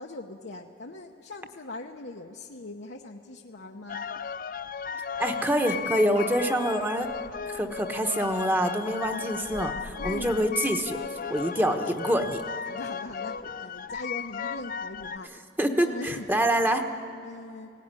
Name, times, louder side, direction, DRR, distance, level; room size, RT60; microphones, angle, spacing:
voice 1, 0.0-4.1 10.0-10.3 12.7-15.3 15.8-16.4 17.2-17.7, left 2 dB, 80° left, 1 dB, 0.9 m, -41 dB
sound 1, 3.9-15.2, left 6 dB, 50° left, 0.5 m, -35 dB
voice 2, 5.2-7.1 7.5-11.0 11.3-12.4 15.6-16.8, right 1 dB, 10° right, 5 dB, 1.1 m, -26 dB
18.0 x 17.5 x 9.7 m, 2.5 s
head